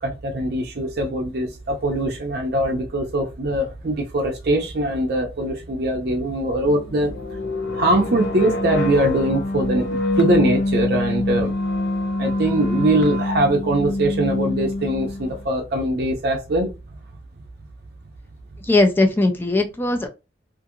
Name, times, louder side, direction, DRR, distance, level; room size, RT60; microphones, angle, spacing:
voice 1, 0.0-7.1 7.7-11.5 12.2-16.7, right 1 dB, 60° right, 0.5 m, -22 dB
sound 1, 6.6-15.4, left 2 dB, 80° left, 0.6 m, -25 dB
voice 2, 18.7-20.1, left 2 dB, 10° left, 0.3 m, -19 dB
2.5 x 2.5 x 2.7 m
head